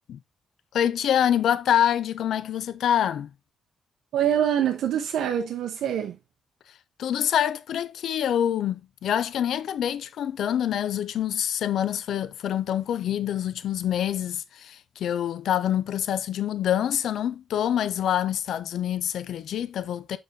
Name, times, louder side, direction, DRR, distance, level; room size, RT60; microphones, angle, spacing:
voice 1, 0.7-3.3 7.0-20.2, left 10 dB, 80° left, 0.5 m, -26 dB
voice 2, 4.1-6.2, right 9 dB, 85° right, 0.7 m, -25 dB
6.8 x 5.4 x 2.7 m
cardioid pair, 105°, 0 cm